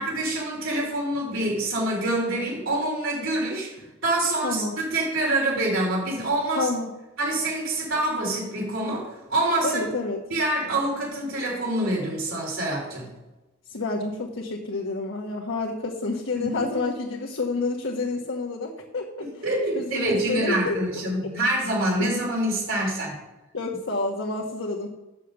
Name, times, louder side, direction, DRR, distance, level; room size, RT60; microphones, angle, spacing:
voice 1, 0.0-3.7 4.0-6.7 7.2-9.8 10.3-13.1 16.4-16.6 19.2-23.1, right 1 dB, 80° right, -2 dB, 3.5 m, -26 dB
voice 2, 4.4-4.8 6.5-6.9 9.6-10.2 13.7-19.4 19.8-20.8 23.5-24.9, left 3 dB, 70° left, -2 dB, 1.2 m, -29 dB
7.5 x 6.6 x 6.6 m, 1.0 s
head